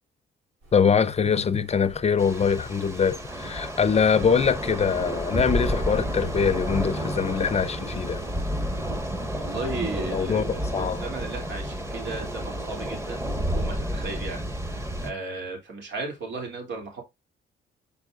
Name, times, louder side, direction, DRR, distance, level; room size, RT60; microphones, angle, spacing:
sound 1, 0.6-13.6, right 1 dB, 85° right, 3.7 m, -52 dB
voice 1, 0.7-8.2 10.1-11.0, left 6 dB, 35° left, 0.7 m, -23 dB
Thunder / Rain, 2.2-15.1, equal, 15° right, 1.4 m, -31 dB
voice 2, 9.3-13.2 13.5-14.4 14.7-17.0, right 3 dB, 65° right, 3.0 m, -35 dB
7.1 x 5.8 x 2.5 m
cardioid pair, 90°, 20 cm